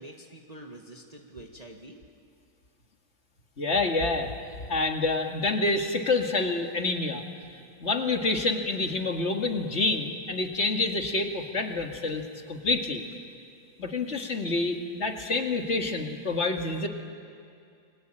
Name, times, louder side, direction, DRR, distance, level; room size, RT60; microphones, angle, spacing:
voice 1, 0.0-2.0, right 1 dB, 25° right, 1 dB, 1.8 m, -46 dB
voice 2, 3.6-4.3 4.7-7.2 7.8-12.2 12.5-13.0 13.8-16.9, left 3 dB, 45° left, 3 dB, 2.3 m, -27 dB
30.0 x 22.0 x 9.0 m, 2.4 s
omnidirectional pair, 1.6 m